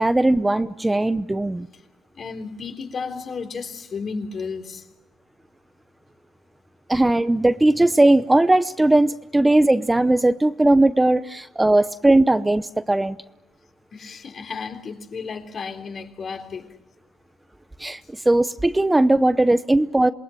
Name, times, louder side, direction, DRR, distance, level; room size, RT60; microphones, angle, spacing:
voice 1, 0.0-1.7 6.9-13.2 17.8-20.1, right 2 dB, 15° right, 12 dB, 0.8 m, -18 dB
voice 2, 2.1-4.9 13.9-16.7, left 5 dB, 50° left, 6 dB, 3.6 m, -33 dB
27.5 x 21.5 x 7.7 m, 1.0 s
cardioid pair, 90°, 0 cm